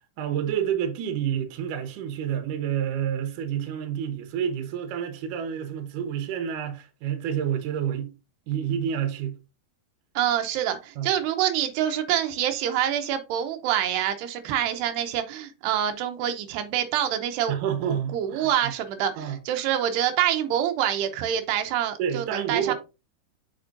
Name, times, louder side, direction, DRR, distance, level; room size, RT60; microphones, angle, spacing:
voice 1, 0.2-8.1 8.5-9.4 11.0-11.1 17.5-18.7 19.2-19.4 22.0-22.7, right 9 dB, 65° right, 2.3 m, -29 dB
voice 2, 10.2-17.5 17.9-22.7, right 10 dB, 90° right, 2.9 m, -26 dB
7.0 x 6.0 x 2.6 m
omnidirectional pair, 4.6 m